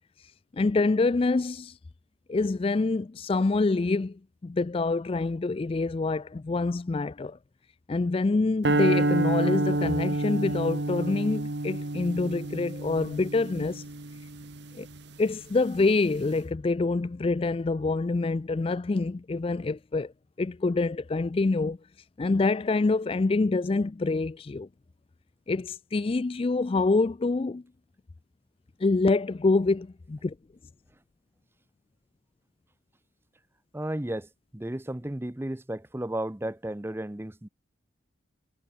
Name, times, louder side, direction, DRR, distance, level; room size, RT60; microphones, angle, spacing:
voice 1, 0.5-1.7 2.3-7.4 7.9-13.8 14.7-14.9 15.2-20.1 20.4-21.8 22.2-24.7 25.5-27.6 28.8-30.3, left 3 dB, 30° left, 0.3 m, -26 dB
sound 1, 8.6-15.0, right 2 dB, 60° right, 1.4 m, -28 dB
voice 2, 33.7-37.5, right 1 dB, 10° right, 0.6 m, -34 dB
head